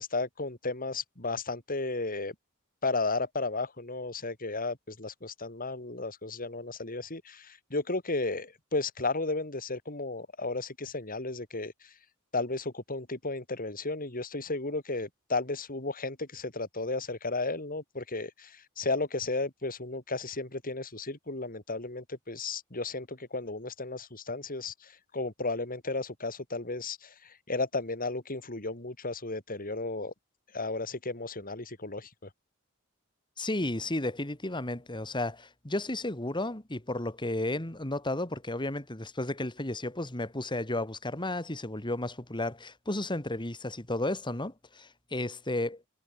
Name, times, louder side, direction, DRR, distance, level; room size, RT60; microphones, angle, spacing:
voice 1, 0.0-2.3 2.8-11.9 12.3-30.1 30.5-32.3, left 3 dB, 45° left, 4.9 m, -34 dB
voice 2, 33.4-45.8, left 1 dB, 20° left, 2.5 m, -33 dB
head